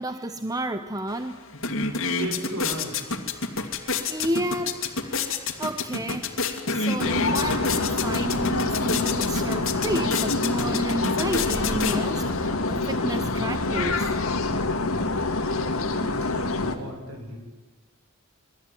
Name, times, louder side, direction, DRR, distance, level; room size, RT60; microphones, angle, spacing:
voice 1, 0.0-1.3 3.8-5.2 5.6-6.3 6.7-14.1, right 1 dB, 15° right, 8 dB, 0.9 m, -31 dB
sound 1, 1.1-1.2 1.5-12.4, left 4 dB, 70° left, 2.5 m, -29 dB
voice 2, 2.1-3.1 15.7-17.5, right 1 dB, 90° right, 3 dB, 6.6 m, -36 dB
sound 2, 7.0-16.8, left 3 dB, 90° left, 2.1 m, -26 dB
27.0 x 22.0 x 9.3 m, 1.2 s
head